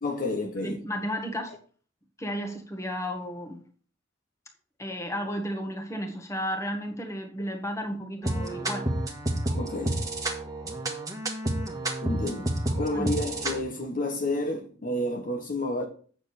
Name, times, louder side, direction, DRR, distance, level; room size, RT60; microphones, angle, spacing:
voice 1, 0.0-0.8 9.5-10.1 12.0-12.5 12.7-15.9, left 1 dB, 45° left, 1.1 m, -30 dB
voice 2, 0.6-1.5 2.2-3.6 4.8-8.9 12.9-13.1, equal, 15° left, 1.5 m, -33 dB
sound 1, 8.2-13.6, right 1 dB, 20° right, 1.5 m, -30 dB
8.9 x 6.7 x 4.3 m
head